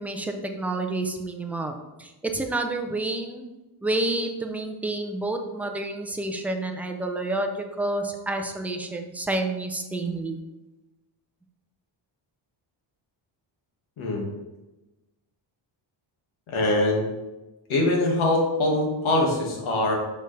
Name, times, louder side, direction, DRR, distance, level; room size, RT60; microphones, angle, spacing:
voice 1, 0.0-3.5 3.8-10.4, right 2 dB, 5° right, 4 dB, 0.3 m, -29 dB
voice 2, 16.5-17.0 17.7-19.9, left 2 dB, 90° left, -1 dB, 1.8 m, -23 dB
6.6 x 5.1 x 3.2 m, 1.1 s
wide cardioid pair, 175°, 47 cm